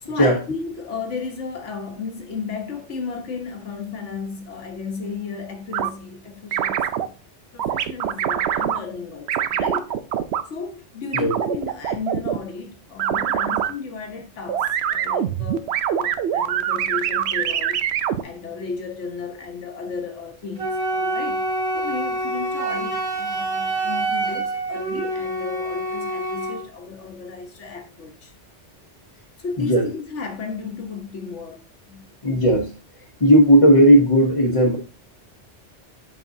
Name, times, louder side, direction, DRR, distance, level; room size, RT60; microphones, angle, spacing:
voice 1, 0.0-7.2 7.5-9.9 10.5-21.4 21.7-28.3 29.4-32.0, left 5 dB, 85° left, 1.5 m, -34 dB
sound 1, 5.7-5.9 6.5-7.1 7.6-8.8 9.3-10.4 11.1-12.4 13.0-13.7 14.5-18.2, right 9 dB, 70° right, 0.8 m, -23 dB
Wind instrument woodwind instrument, 20.6-26.6, right 2 dB, 30° right, 1.9 m, -26 dB
voice 2, 32.2-32.7 33.2-34.8, equal, 30° left, 0.9 m, -15 dB
7.8 x 5.4 x 2.7 m
omnidirectional pair, 1.2 m